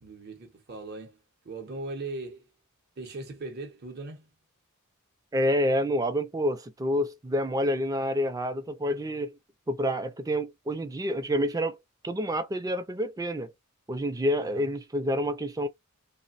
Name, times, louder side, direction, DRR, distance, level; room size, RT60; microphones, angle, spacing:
voice 1, 0.0-1.2 1.4-2.5 3.0-4.3 14.4-14.7, right 2 dB, 50° right, 0.7 m, -39 dB
voice 2, 5.3-9.4 9.7-11.8 12.0-13.5 13.9-15.7, equal, 15° right, 0.3 m, -28 dB
3.1 x 2.1 x 2.4 m
head